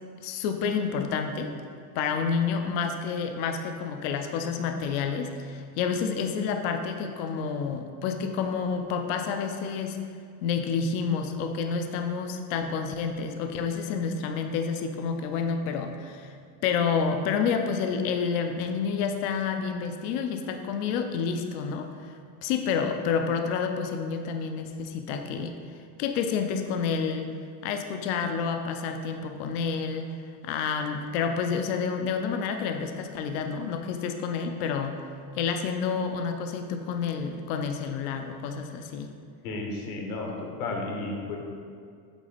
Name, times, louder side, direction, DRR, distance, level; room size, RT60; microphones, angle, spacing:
voice 1, 0.2-1.5 1.9-10.0 10.4-16.3 16.6-22.1 22.4-25.6 26.0-27.3 27.6-30.1 30.4-35.0 35.3-39.1, left 6 dB, 45° left, 6 dB, 0.5 m, -29 dB
voice 2, 39.4-41.4, left 2 dB, 75° left, 1 dB, 1.4 m, -33 dB
8.0 x 3.8 x 4.1 m, 2.2 s
cardioid pair, 175°, 42 cm